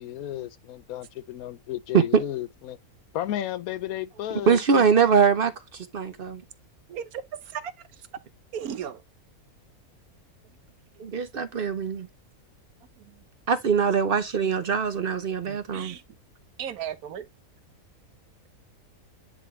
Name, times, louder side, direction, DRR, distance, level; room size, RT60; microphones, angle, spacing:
voice 1, 0.0-2.8 3.1-4.9, left 12 dB, 75° left, 1.1 m, -33 dB
voice 2, 4.5-6.4 11.0-12.1 13.5-16.0, right 6 dB, 50° right, 0.7 m, -23 dB
voice 3, 6.9-8.1 8.5-9.0 10.9-11.0 13.0-13.2 15.4-16.0 16.6-17.3, right 8 dB, 80° right, 1.3 m, -36 dB
10.0 x 3.6 x 3.1 m
omnidirectional pair, 1.5 m